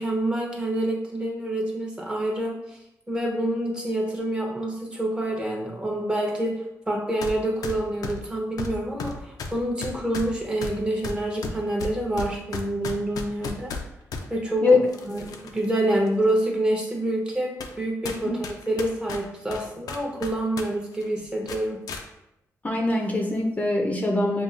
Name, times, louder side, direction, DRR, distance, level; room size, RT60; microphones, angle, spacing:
voice 1, 0.0-2.6 3.1-6.5 6.9-13.8 14.3-14.8 15.0-18.3 18.7-21.8, right 1 dB, 15° right, 0 dB, 0.9 m, -27 dB
sound 1, 7.2-7.4 7.6-14.3 14.9-15.6 16.1-16.2 16.9-17.0 17.6-17.8 18.0-20.7 20.9-21.1 21.5-22.0, left 4 dB, 80° left, 0.5 m, -34 dB
voice 2, 22.6-24.4, left 3 dB, 25° left, 0 dB, 0.6 m, -22 dB
6.8 x 2.4 x 2.5 m, 0.86 s
wide cardioid pair, 125°, 6 cm